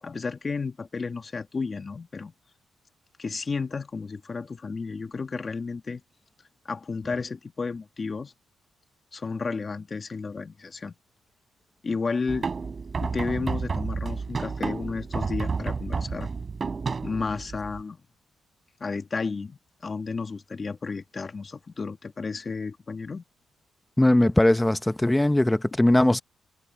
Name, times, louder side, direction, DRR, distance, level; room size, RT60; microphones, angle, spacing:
voice 1, 0.0-2.3 3.2-6.0 6.7-8.3 9.1-10.9 11.8-12.5 13.0-16.3 16.9-18.0 18.8-23.2, left 4 dB, 35° left, 2.1 m, -32 dB
sound 1, 12.3-17.8, right 4 dB, 35° right, 4.0 m, -31 dB
voice 2, 24.0-26.2, left 1 dB, 10° left, 1.0 m, -20 dB
cardioid pair, 90°, 0 cm